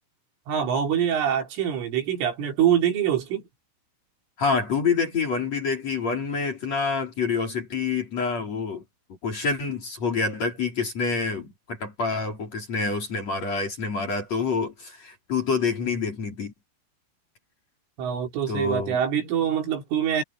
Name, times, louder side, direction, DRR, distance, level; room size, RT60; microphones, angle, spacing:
voice 1, 0.5-3.5 18.0-20.2, right 9 dB, 70° right, 5.9 m, -24 dB
voice 2, 4.4-8.8 9.1-16.5 18.5-19.0, left 4 dB, 35° left, 4.7 m, -27 dB
omnidirectional pair, 5.9 m